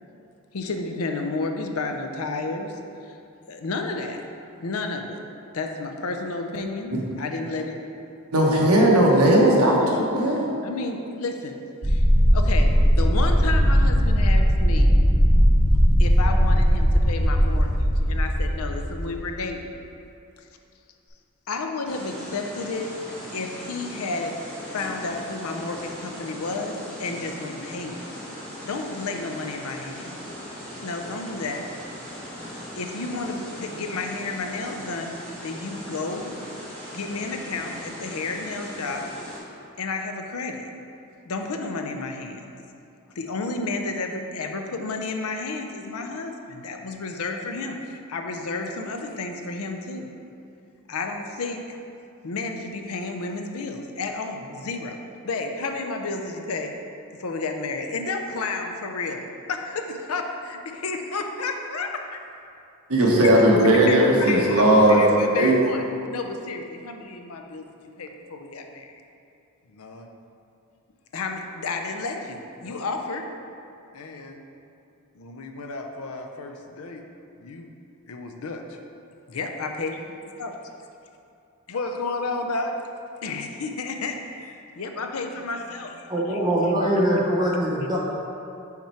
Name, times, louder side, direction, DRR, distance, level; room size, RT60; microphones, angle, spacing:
voice 1, 0.5-3.2 3.5-4.2 4.6-5.2 5.5-7.8 9.5-11.6 11.8-12.0 12.3-15.0 16.0-19.8 21.5-22.9 23.3-24.4 24.7-28.1 28.6-30.2 30.8-31.7 32.8-36.3 36.8-39.1 39.8-40.7 41.3-42.5 43.1-50.1 50.9-51.8 52.2-55.0 55.2-56.7 57.2-62.2 63.9-67.6 68.0-68.9 69.7-70.1 71.1-73.3 73.9-74.4 75.1-77.0 77.4-77.7 78.1-78.8 79.3-80.0 80.4-80.5 81.7-82.7 83.2-86.4, left 3 dB, 75° left, 4 dB, 0.6 m, -31 dB
voice 2, 8.3-10.5 62.9-65.0 65.4-65.6, right 1 dB, 80° right, -2 dB, 1.1 m, -17 dB
sound 1, 11.8-19.4, equal, 40° right, 0.9 m, -18 dB
sound 2, 21.8-39.4, equal, 5° left, 1.3 m, -39 dB
voice 3, 86.1-88.0, right 1 dB, 20° right, -5 dB, 0.8 m, -22 dB
5.8 x 4.4 x 4.4 m, 2.6 s
head